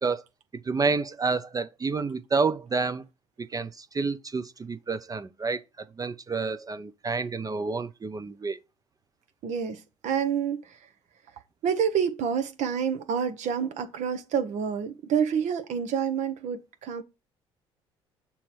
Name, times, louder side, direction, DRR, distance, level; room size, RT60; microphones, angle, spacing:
voice 1, 0.7-3.0 3.4-5.6 6.0-8.6, right 4 dB, 25° right, 0.6 m, -29 dB
voice 2, 9.4-10.9 11.6-17.0, right 7 dB, 60° right, 0.8 m, -28 dB
7.0 x 3.0 x 4.6 m
hypercardioid pair, 55°, 14 cm